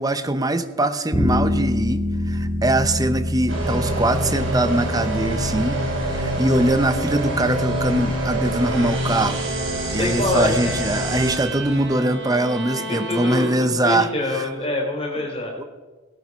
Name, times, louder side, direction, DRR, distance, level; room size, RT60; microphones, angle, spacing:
voice 1, 0.0-9.4 9.9-14.5 15.6-15.7, right 1 dB, 20° right, 10 dB, 0.8 m, -22 dB
sound 1, 1.1-11.9, left 1 dB, ahead, 5.7 m, -28 dB
sound 2, 3.5-11.4, right 1 dB, 80° right, 4.3 m, -26 dB
sound 3, 8.4-14.1, right 2 dB, 60° right, 1.7 m, -34 dB
voice 2, 10.0-10.8 13.1-15.5, left 2 dB, 30° left, 1 dB, 3.4 m, -25 dB
18.5 x 12.0 x 5.3 m, 1.3 s
head